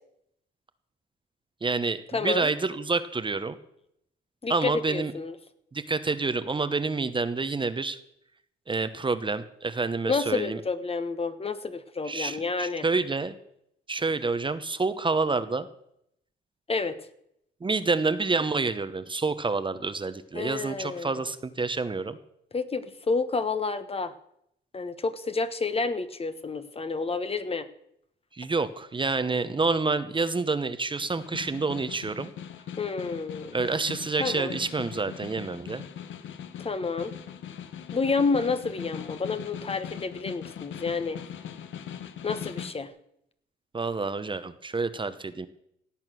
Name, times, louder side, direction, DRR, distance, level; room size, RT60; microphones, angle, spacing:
voice 1, 1.6-3.6 4.5-5.1 5.7-8.0 8.7-10.6 12.0-13.3 13.9-15.7 17.6-22.2 28.3-32.3 33.5-35.8 43.7-45.5, right 3 dB, 25° right, 11 dB, 1.0 m, -28 dB
voice 2, 2.1-2.5 4.4-5.3 10.0-12.8 16.7-17.0 20.3-21.2 22.5-24.1 24.7-27.7 32.8-33.6 34.2-34.6 36.6-37.1 37.9-41.2 42.2-42.9, left 4 dB, 30° left, 11 dB, 1.2 m, -29 dB
Snare drum, 31.0-42.9, left 9 dB, 75° left, 1.1 m, -41 dB
17.0 x 8.8 x 6.3 m, 0.75 s
cardioid pair, 90°, 20 cm